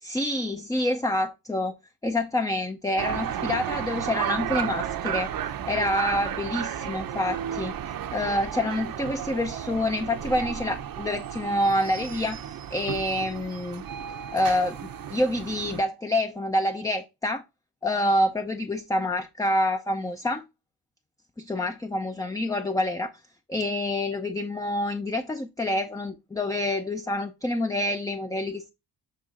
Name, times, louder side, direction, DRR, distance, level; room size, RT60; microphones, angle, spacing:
voice 1, 0.0-1.8 2.0-5.3 5.7-12.4 12.7-13.8 14.3-14.8 15.1-17.4 17.8-20.4 21.4-23.1 23.5-28.7, left 1 dB, 10° left, 0.4 m, -27 dB
sound 1, 3.0-15.8, right 9 dB, 60° right, 0.7 m, -33 dB
7.5 x 3.6 x 3.7 m
cardioid pair, 110°, 39 cm